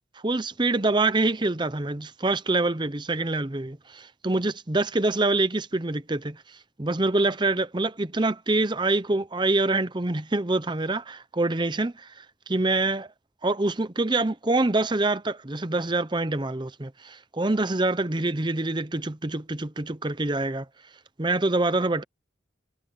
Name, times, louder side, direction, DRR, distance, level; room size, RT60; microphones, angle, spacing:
voice 1, 0.2-6.4 6.8-12.1 12.5-13.1 13.4-20.6 21.2-22.0, right 2 dB, 25° right, 0.7 m, -25 dB
head